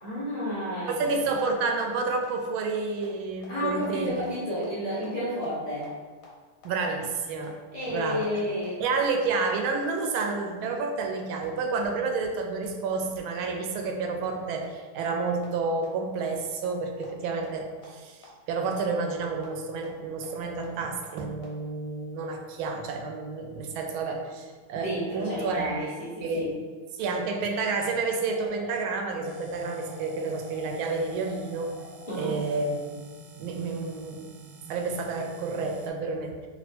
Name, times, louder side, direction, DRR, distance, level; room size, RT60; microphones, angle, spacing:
voice 1, 0.0-1.1 3.5-5.9 7.7-8.8 24.7-26.5 32.1-32.3, left 1 dB, 30° left, -9 dB, 0.8 m, -31 dB
voice 2, 0.9-4.2 6.6-7.6 7.9-8.4 8.8-25.9 26.2-26.5 27.0-31.7 32.2-32.8 33.4-34.3 34.7-36.5, right 4 dB, 90° right, 3 dB, 1.4 m, -30 dB
sound 1, 1.8-1.9 2.2-2.3 2.6-2.7 3.0-3.1 3.4-3.5 3.8-3.9 4.2-4.3 4.6-4.7 5.0-5.1 5.4-5.5 5.8-5.9 6.2-6.3 6.6-6.7 7.0-7.1 7.4-7.5 7.8-7.9 8.2-8.3 8.6-8.7 9.0-9.1 9.4-9.5 9.8-9.9 10.2-10.3 10.6-10.7 11.0-11.1 11.4-11.5 11.8-11.9 12.2-12.3 12.6-12.7 13.0-13.1 13.4-13.5 13.8-13.9 14.2-14.3 14.6-14.7 15.0-15.1 15.4-15.5 15.8-15.9 16.2-16.3 16.6-16.7 17.0-17.1 17.4-17.5 17.8-17.9 18.2-18.3 18.6-18.7 19.0-19.1 19.4-19.5 19.8-19.9 20.2-20.3 20.6-20.7 21.0-21.1 21.4-21.5, left 5 dB, 55° left, 1.2 m, -49 dB
sound 2, 27.8-32.8, left 4 dB, 85° left, 1.4 m, -47 dB
sound 3, 29.2-35.9, right 2 dB, 75° right, 1.0 m, -46 dB
3.4 x 2.8 x 4.1 m, 1.5 s
omnidirectional pair, 2.2 m